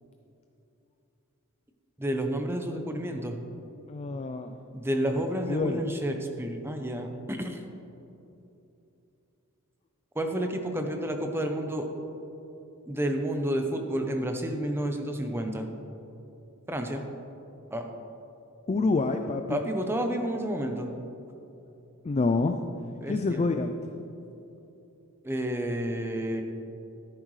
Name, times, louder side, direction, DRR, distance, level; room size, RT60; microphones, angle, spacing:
voice 1, 2.0-3.4 4.7-7.6 10.2-11.9 12.9-15.7 16.7-17.0 17.7-17.8 19.5-20.9 23.0-23.4 25.2-26.4, right 1 dB, 10° right, 4 dB, 0.7 m, -30 dB
voice 2, 3.9-4.5 5.1-5.2 5.5-5.8 18.7-19.6 22.0-22.6 23.1-23.7, left 3 dB, 30° left, 7 dB, 0.3 m, -27 dB
12.5 x 10.5 x 3.2 m, 2.9 s
head